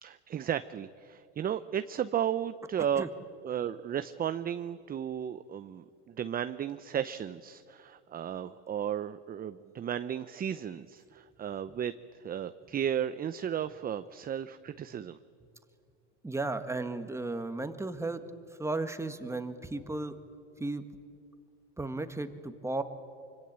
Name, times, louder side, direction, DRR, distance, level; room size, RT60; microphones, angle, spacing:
voice 1, 0.0-3.0 3.4-15.2, right 9 dB, 25° right, 12 dB, 0.7 m, -34 dB
voice 2, 16.2-18.2 18.6-20.2 20.6-20.8 21.8-22.8, right 2 dB, 10° right, 8 dB, 1.8 m, -34 dB
25.0 x 25.0 x 9.0 m, 2.3 s
supercardioid pair, 110°, 33 cm